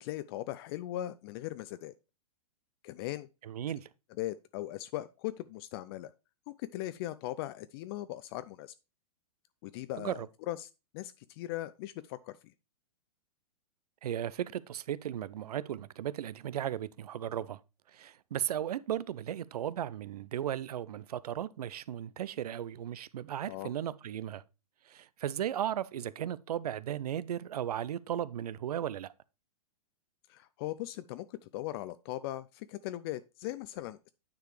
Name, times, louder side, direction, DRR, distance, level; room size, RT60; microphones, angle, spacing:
voice 1, 0.0-1.9 2.8-3.3 4.2-6.1 6.5-8.7 9.6-12.4 23.5-23.7 30.3-34.1, left 15 dB, 40° left, 0.4 m, -39 dB
voice 2, 3.4-3.9 10.0-10.3 14.0-17.6 17.9-24.4 24.9-29.1, right 10 dB, 75° right, 0.5 m, -36 dB
9.2 x 4.9 x 3.2 m
hypercardioid pair, 120°, 20 cm